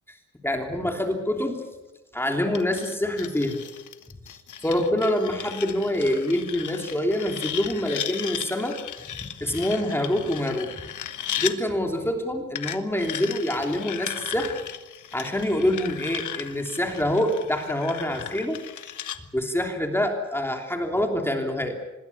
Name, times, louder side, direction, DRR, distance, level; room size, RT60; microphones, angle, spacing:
voice 1, 0.4-1.6 2.1-3.6 4.6-8.8 9.4-10.7 11.4-14.6 15.1-18.6 19.3-21.8, left 1 dB, 10° left, 3 dB, 3.2 m, -26 dB
sound 1, 2.5-11.6 12.6-19.2, left 10 dB, 80° left, 1.5 m, -36 dB
25.5 x 21.0 x 7.2 m, 1.1 s
wide cardioid pair, 130°, 30 cm